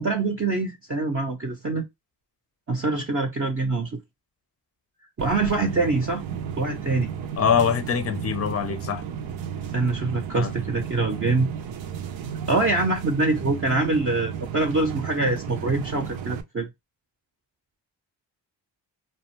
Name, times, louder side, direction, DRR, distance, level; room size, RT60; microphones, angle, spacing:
voice 1, 0.0-1.8 2.7-4.0 5.2-6.2 6.6-7.1 9.7-11.5 12.5-16.7, right 3 dB, 30° right, 0.7 m, -24 dB
sound 1, 5.2-16.4, right 8 dB, 80° right, 0.6 m, -33 dB
voice 2, 7.4-9.0 10.4-10.5, left 7 dB, 35° left, 0.6 m, -23 dB
2.5 x 2.0 x 3.0 m
cardioid pair, 60°, 45 cm